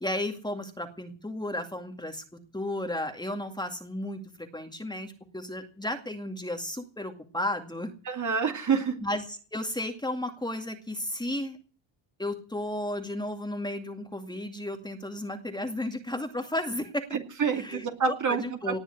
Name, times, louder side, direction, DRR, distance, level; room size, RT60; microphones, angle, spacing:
voice 1, 0.0-2.2 2.5-7.9 9.0-11.6 12.2-17.1 17.6-18.8, left 1 dB, 10° left, 5 dB, 2.2 m, -33 dB
voice 2, 8.1-9.0 17.1-18.8, right 6 dB, 40° right, 5 dB, 2.6 m, -28 dB
19.0 x 7.2 x 9.9 m, 0.40 s
cardioid pair, 120°, 47 cm